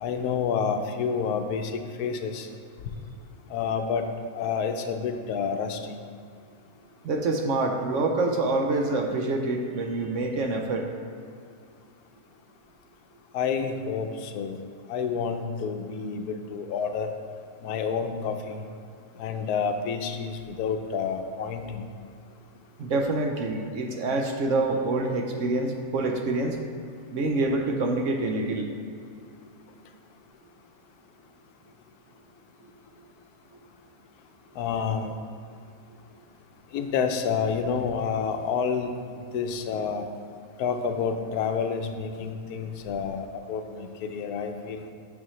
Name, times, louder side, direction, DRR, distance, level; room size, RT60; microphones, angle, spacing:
voice 1, 0.0-2.5 3.5-4.0 4.3-6.0 13.3-14.6 14.9-17.1 17.6-18.6 19.2-21.9 34.6-35.1 36.7-38.9 39.3-40.1 40.6-44.9, left 6 dB, 85° left, 6 dB, 1.1 m, -29 dB
voice 2, 7.0-10.9 22.8-26.6 27.1-28.7 32.6-32.7, right 2 dB, 65° right, 3 dB, 0.9 m, -26 dB
9.2 x 6.3 x 3.0 m, 2.4 s
omnidirectional pair, 1.6 m